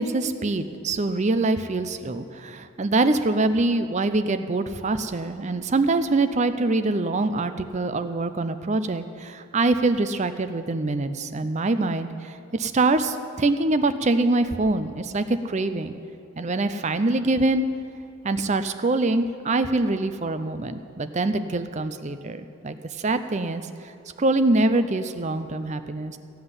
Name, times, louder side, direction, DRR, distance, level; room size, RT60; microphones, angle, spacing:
voice 1, 0.0-15.9 16.4-17.7 18.2-23.6 24.2-26.2, right 2 dB, 30° right, 10 dB, 0.5 m, -24 dB
15.0 x 5.8 x 9.7 m, 2.6 s
head